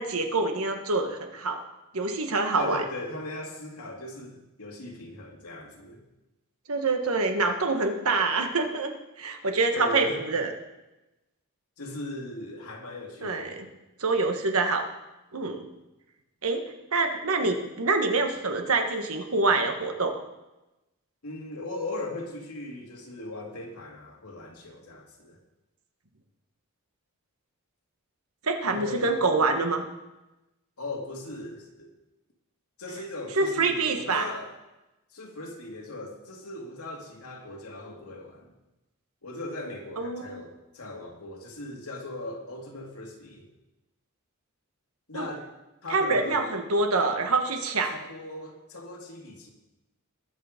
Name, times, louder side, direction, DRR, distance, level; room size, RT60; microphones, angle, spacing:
voice 1, 0.0-1.6 1.9-2.8 6.7-10.5 13.2-13.7 14.0-14.9 15.3-15.6 16.4-16.6 16.9-20.1 28.4-29.8 33.4-34.3 40.0-40.4 45.1-45.2 45.9-47.9, right 3 dB, 75° right, 5 dB, 1.5 m, -26 dB
voice 2, 2.6-6.0 9.7-10.2 11.8-13.6 21.2-25.4 28.7-29.1 30.8-31.9 32.8-34.5 35.1-38.6 39.2-43.5 45.1-45.5 45.8-46.5 47.9-49.5, left 2 dB, 80° left, 0 dB, 2.5 m, -39 dB
20.5 x 6.9 x 5.2 m, 1.0 s
head